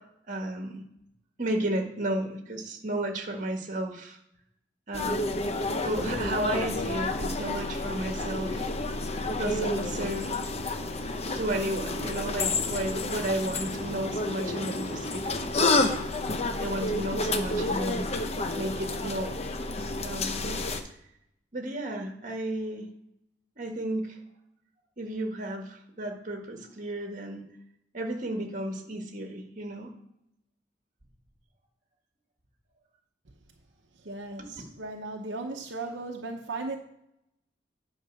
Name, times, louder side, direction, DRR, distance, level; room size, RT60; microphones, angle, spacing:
voice 1, 0.3-0.8 1.4-4.2 4.9-5.3 5.8-8.7 9.4-10.3 11.3-16.0 16.6-18.1 18.5-19.4 20.0-20.6 21.5-22.9 23.6-24.2 25.0-27.4 27.9-29.9 34.4-34.5, right 1 dB, 45° right, 3 dB, 1.5 m, -33 dB
sound 1, 4.9-20.8, left 2 dB, 35° left, 0.7 m, -30 dB
voice 2, 34.0-36.8, right 3 dB, 80° right, 2 dB, 0.9 m, -36 dB
9.3 x 5.1 x 6.3 m, 0.77 s
head